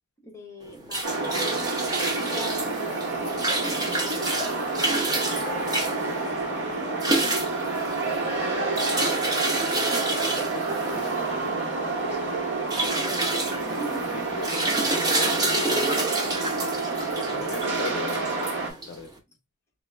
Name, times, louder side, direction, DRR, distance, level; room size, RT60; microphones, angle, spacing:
voice 1, 0.2-1.7 2.2-7.4 7.7-8.8 13.4-14.2, left 1 dB, 10° left, 0.8 m, -43 dB
sound 1, 0.6-19.1, right 2 dB, 15° right, 0.7 m, -29 dB
sound 2, 1.0-18.7, right 3 dB, 55° right, 1.3 m, -29 dB
voice 2, 10.3-12.3 13.6-16.1 17.3-19.1, left 4 dB, 50° left, 0.5 m, -39 dB
4.2 x 2.4 x 3.2 m
head